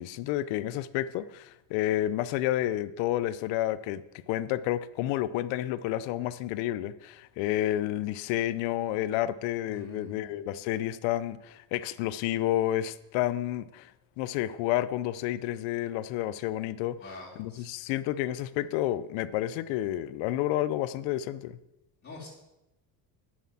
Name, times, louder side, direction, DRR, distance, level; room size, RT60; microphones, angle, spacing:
voice 1, 0.0-13.9 14.2-17.0 17.4-21.6, left 13 dB, 90° left, 16 dB, 0.7 m, -30 dB
voice 2, 9.6-10.4 16.9-17.7 22.0-22.3, left 3 dB, 35° left, -6 dB, 3.6 m, -45 dB
9.3 x 6.4 x 7.3 m, 0.94 s
cardioid pair, 150°, 43 cm